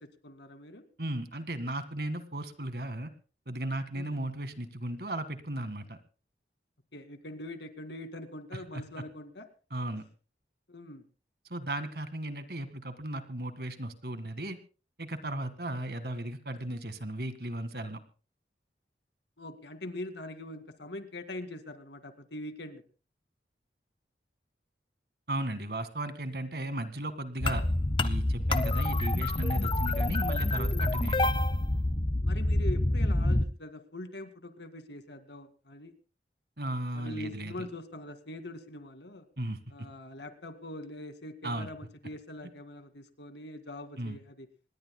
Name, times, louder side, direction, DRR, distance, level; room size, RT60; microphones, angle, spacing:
voice 1, 0.2-0.8 3.9-4.2 6.9-9.5 10.7-11.0 19.4-22.8 32.2-35.9 36.9-39.3 39.7-44.5, left 1 dB, 80° left, 9 dB, 2.2 m, -43 dB
voice 2, 1.0-3.1 3.5-6.0 8.5-8.8 9.7-10.0 11.5-14.6 15.0-18.0 25.3-27.6 28.0-31.4 36.6-37.7 39.4-39.6 41.4-41.7 44.0-44.2, right 1 dB, 60° right, 11 dB, 1.8 m, -36 dB
sound 1, 27.4-33.5, left 1 dB, 30° left, 0.8 m, -27 dB
26.5 x 20.0 x 2.2 m, 0.35 s
head